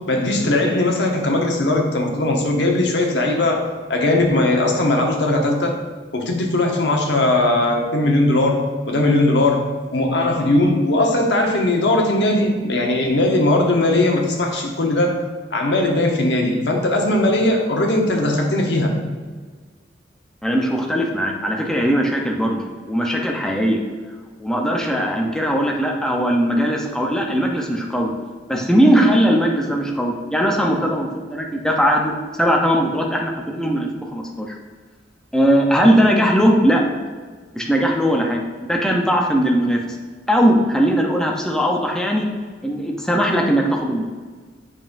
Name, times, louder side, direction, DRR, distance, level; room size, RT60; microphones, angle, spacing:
voice 1, 0.0-5.8 6.1-15.2 15.5-19.0, left 1 dB, 75° left, 1 dB, 1.0 m, -19 dB
voice 2, 20.4-23.8 24.4-28.1 28.5-32.1 32.4-34.5 35.3-36.8 37.5-38.4 38.7-40.0 40.3-42.3 42.6-44.0, equal, 5° left, 0 dB, 0.7 m, -19 dB
7.4 x 5.4 x 2.6 m, 1.5 s
head